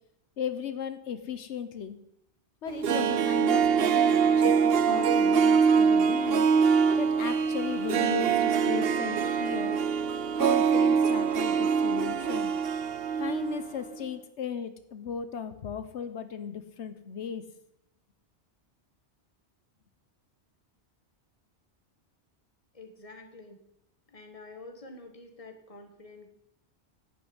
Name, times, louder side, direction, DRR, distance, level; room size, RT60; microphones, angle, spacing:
voice 1, 0.4-2.0 2.6-6.5 7.0-9.8 10.4-12.5 13.2-17.4, left 7 dB, 85° left, 11 dB, 1.2 m, -36 dB
Harp, 2.7-13.7 13.9-14.0, right 6 dB, 60° right, 0.9 m, -24 dB
voice 2, 22.7-23.6 24.1-26.3, left 2 dB, 30° left, 6 dB, 1.8 m, -48 dB
11.5 x 6.8 x 9.6 m, 0.79 s
omnidirectional pair, 1.1 m